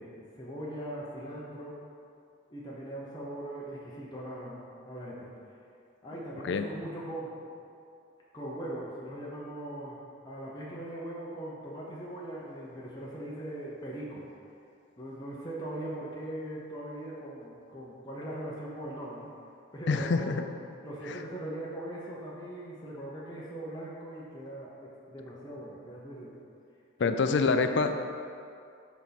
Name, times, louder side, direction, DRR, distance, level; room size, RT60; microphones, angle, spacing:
voice 1, 0.0-1.8 2.5-5.3 6.0-7.4 8.3-10.0 10.2-14.3 15.0-19.3 19.7-20.5 20.8-26.3 27.0-27.2, right 1 dB, 20° left, -6 dB, 0.9 m, -40 dB
voice 2, 19.9-20.4 21.1-21.2 27.0-28.2, left 4 dB, 60° left, 7 dB, 0.4 m, -26 dB
5.9 x 4.2 x 5.9 m, 2.5 s
head